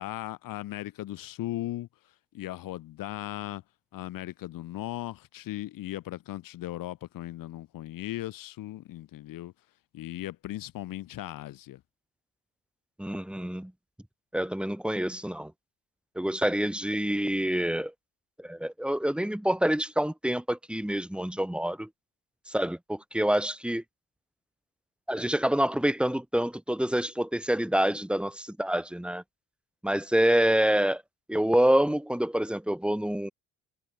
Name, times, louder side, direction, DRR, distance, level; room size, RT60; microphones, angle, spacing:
voice 1, 0.0-1.9 2.3-3.6 3.9-9.5 9.9-11.8, left 15 dB, 75° left, 7.0 m, -37 dB
voice 2, 13.0-13.7 14.3-15.5 16.1-17.9 18.4-21.9 22.5-23.8 25.1-29.2 29.8-31.0 31.3-33.3, right 1 dB, 5° right, 3.3 m, -27 dB
supercardioid pair, 70°, 34 cm